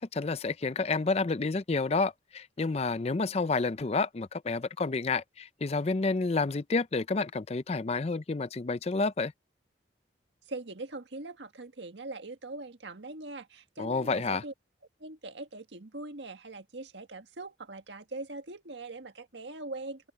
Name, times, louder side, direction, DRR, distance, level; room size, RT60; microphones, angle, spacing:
voice 1, 0.0-9.3 13.8-14.4, left 3 dB, 35° left, 0.5 m, -29 dB
voice 2, 10.5-14.5 15.0-20.1, right 2 dB, 85° right, 1.7 m, -42 dB
open air
head